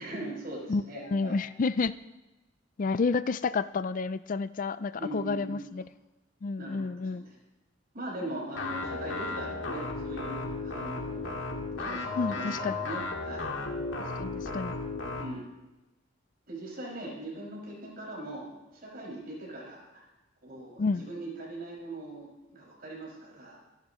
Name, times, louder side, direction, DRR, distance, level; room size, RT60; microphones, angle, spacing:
voice 1, 0.0-1.4 5.0-5.6 6.6-7.4 7.9-11.4 11.8-13.5 15.2-15.5 16.5-20.0 20.4-23.6, right 1 dB, 50° right, -3 dB, 6.2 m, -40 dB
voice 2, 1.1-1.9 2.8-5.8 6.4-7.2 12.2-12.8 14.2-14.7 20.8-21.0, left 4 dB, 45° left, 15 dB, 0.4 m, -30 dB
sound 1, 8.5-15.2, left 3 dB, 85° left, 2.0 m, -35 dB
25.5 x 11.5 x 3.1 m, 1.0 s
head